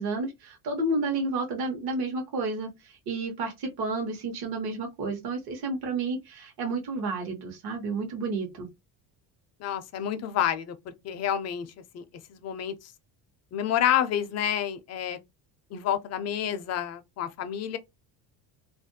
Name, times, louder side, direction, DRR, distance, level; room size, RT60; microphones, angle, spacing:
voice 1, 0.0-8.7, right 3 dB, 60° right, 1.0 m, -31 dB
voice 2, 9.6-10.7 11.0-11.7 11.9-12.0 12.3-12.7 13.5-15.2 15.7-17.8, left 10 dB, 40° left, 0.4 m, -28 dB
2.5 x 2.2 x 2.6 m
cardioid pair, 135°, 41 cm